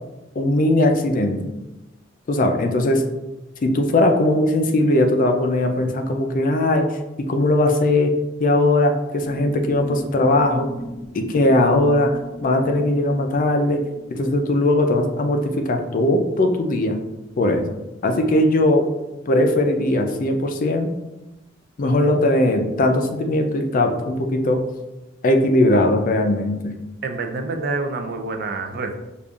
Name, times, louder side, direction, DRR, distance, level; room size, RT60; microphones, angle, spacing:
voice 1, 0.4-1.5 2.3-3.1 3.6-10.7 11.1-13.8 14.1-17.0 17.4-17.7 18.0-18.9 19.3-20.9 21.8-24.6 25.2-26.7, left 1 dB, 45° left, 5 dB, 0.4 m, -19 dB
sound 1, 9.2-14.2, right 1 dB, 25° right, 0.8 m, -38 dB
voice 2, 27.0-29.0, right 3 dB, 50° right, 5 dB, 0.4 m, -27 dB
5.1 x 2.4 x 2.3 m, 0.99 s
head